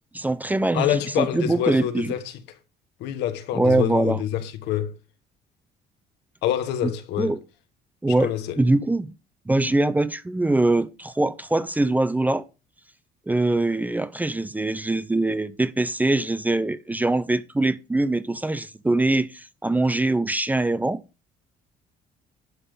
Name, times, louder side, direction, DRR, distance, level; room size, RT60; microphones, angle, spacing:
voice 1, 0.1-2.1 3.5-4.2 7.2-7.4 8.0-8.3 8.6-9.1 9.5-12.5 13.3-21.0, right 2 dB, 10° right, 0.5 m, -23 dB
voice 2, 0.7-2.4 3.0-4.9 6.4-7.3 8.1-8.6, left 11 dB, 85° left, 1.3 m, -26 dB
11.0 x 3.8 x 6.7 m
cardioid pair, 110°, 17 cm